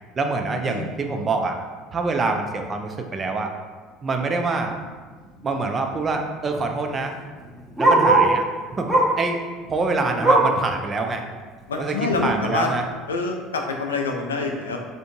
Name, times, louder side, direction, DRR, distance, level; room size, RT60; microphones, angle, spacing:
voice 1, 0.2-1.6 1.9-3.5 4.0-4.7 5.4-7.1 7.8-8.5 8.8-8.9 9.2-9.4 9.7-11.2 11.8-12.8, right 3 dB, 30° right, 4 dB, 0.4 m, -25 dB
Bark, 4.7-4.9 5.2-5.3 5.5-8.4 8.8-9.3 9.6-10.6 11.1-11.2 11.6-11.7 12.4-12.5, right 2 dB, 10° right, 0.8 m, -20 dB
voice 2, 11.7-12.7 13.1-14.8, left 3 dB, 85° left, 3 dB, 0.3 m, -26 dB
3.4 x 2.6 x 2.6 m, 1.4 s
hypercardioid pair, 65°, 0 cm